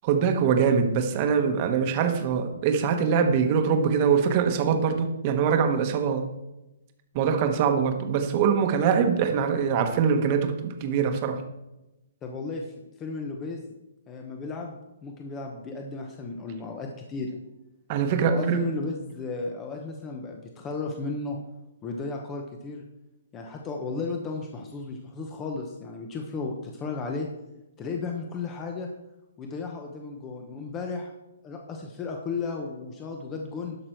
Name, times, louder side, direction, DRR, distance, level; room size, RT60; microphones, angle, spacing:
voice 1, 0.0-6.3 7.1-11.4 17.9-18.6, right 6 dB, 30° right, 6 dB, 1.1 m, -23 dB
voice 2, 12.2-13.7 14.1-17.4 18.3-21.4 21.8-22.8 23.3-27.3 27.8-28.9 29.4-31.1 31.4-33.8, left 4 dB, 15° left, 2 dB, 0.8 m, -34 dB
11.5 x 6.0 x 4.4 m, 0.95 s
hypercardioid pair, 165°, 0 cm